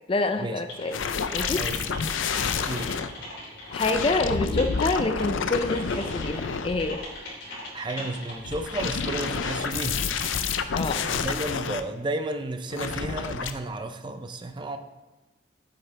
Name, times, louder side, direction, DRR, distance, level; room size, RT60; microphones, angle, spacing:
voice 1, 0.1-1.0 1.3-1.6 3.7-7.0 10.7-11.1, left 3 dB, 30° left, 8 dB, 0.4 m, -27 dB
Typing, 0.7-10.6, left 1 dB, 70° left, 3.1 m, -40 dB
sound 1, 0.9-3.1 3.7-7.1 8.4-11.8 12.7-13.5, left 5 dB, 85° left, 0.5 m, -29 dB
voice 2, 1.6-2.0 2.7-2.9 7.7-10.0 11.0-14.8, right 2 dB, 25° right, 8 dB, 0.5 m, -32 dB
8.6 x 7.8 x 3.3 m, 1.1 s
head